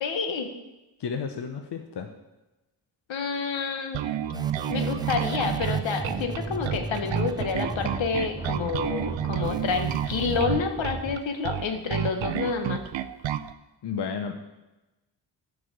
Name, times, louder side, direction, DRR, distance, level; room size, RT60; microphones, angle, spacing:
voice 1, 0.0-0.5 3.1-4.0 4.7-12.8, left 5 dB, 90° left, 6 dB, 1.4 m, -29 dB
voice 2, 1.0-2.1 13.8-14.4, left 6 dB, 65° left, 5 dB, 0.9 m, -32 dB
Bass guitar, 3.9-13.5, right 11 dB, 90° right, 0.6 m, -30 dB
sound 1, 4.3-11.1, right 2 dB, 10° right, 0.4 m, -35 dB
12.0 x 4.9 x 7.8 m, 1.0 s
wide cardioid pair, 155°, 44 cm